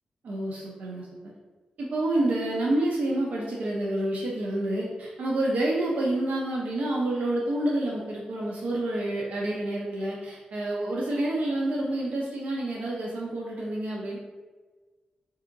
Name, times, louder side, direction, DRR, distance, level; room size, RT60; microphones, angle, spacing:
voice 1, 0.2-1.1 1.8-14.2, right 1 dB, 70° right, -4 dB, 0.6 m, -28 dB
4.4 x 2.8 x 2.5 m, 1.3 s
wide cardioid pair, 180°, 3 cm